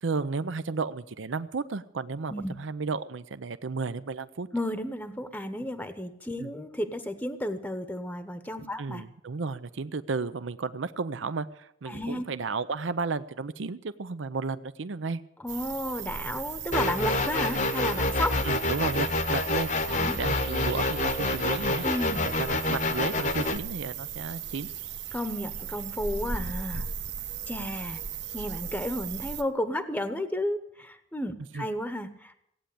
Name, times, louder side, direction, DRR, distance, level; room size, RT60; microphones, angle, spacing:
voice 1, 0.0-4.5 6.4-6.5 8.8-15.2 18.4-21.9 22.2-24.7 31.5-31.7, right 4 dB, 80° right, 14 dB, 0.6 m, -33 dB
voice 2, 4.5-9.0 11.9-12.2 15.4-18.3 19.9-20.1 21.8-22.2 25.1-26.8 27.5-28.0 28.3-32.4, left 1 dB, 10° left, 9 dB, 0.9 m, -32 dB
sound 1, 15.5-29.4, right 7 dB, 65° right, 1.1 m, -37 dB
sound 2, 16.7-23.6, left 2 dB, 40° left, 0.9 m, -27 dB
17.0 x 9.1 x 8.5 m, 0.75 s
head